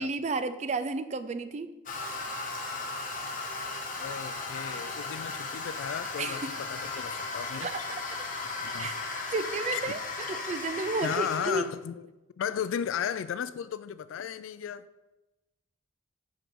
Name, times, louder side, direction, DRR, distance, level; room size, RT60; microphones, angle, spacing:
voice 1, 0.0-1.8 6.2-6.5 7.6-8.0 8.8-8.9 9.3-11.7, right 3 dB, 35° right, 0.3 m, -32 dB
Toilet flush, 1.9-11.6, left 3 dB, 40° left, 0.9 m, -36 dB
voice 2, 4.0-7.7 8.6-8.9 9.7-10.0 11.0-11.9 12.4-14.9, left 8 dB, 85° left, 0.3 m, -35 dB
5.1 x 4.9 x 6.0 m
head